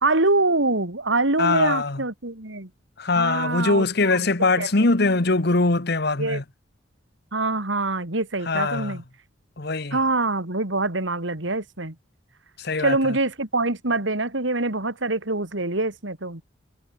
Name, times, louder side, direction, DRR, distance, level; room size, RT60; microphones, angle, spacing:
voice 1, 0.0-2.7 3.1-4.2 4.6-4.7 6.2-6.4 7.3-9.0 9.9-11.9 12.8-16.4, right 2 dB, 70° right, 3.1 m, -24 dB
voice 2, 1.4-2.0 3.0-6.4 8.5-9.0 9.6-10.0 12.6-13.2, left 3 dB, 55° left, 1.4 m, -22 dB
head